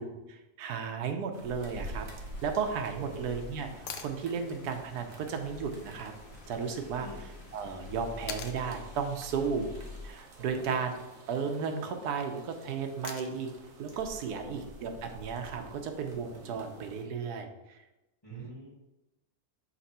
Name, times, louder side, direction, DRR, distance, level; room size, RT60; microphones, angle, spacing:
voice 1, 0.0-2.1 2.4-3.7 4.0-6.1 6.5-7.1 7.5-9.7 10.0-11.0 11.3-13.5 13.8-17.8 18.3-18.5, right 6 dB, 85° right, 5 dB, 1.3 m, -34 dB
sound 1, 1.3-17.0, right 1 dB, 65° right, 1.4 m, -49 dB
sound 2, 1.6-10.1, left 3 dB, 85° left, 1.3 m, -49 dB
voice 2, 3.0-3.3 7.0-7.2 10.4-10.7 11.7-11.9 14.3-14.6 18.2-18.7, equal, 15° left, -9 dB, 1.5 m, -46 dB
sound 3, 3.9-4.2 6.4-6.5 8.3-8.6 10.6-11.0 13.0-13.5 15.6-15.7, left 7 dB, 65° left, 0.8 m, -41 dB
5.6 x 3.3 x 5.4 m, 1.0 s
omnidirectional pair, 1.6 m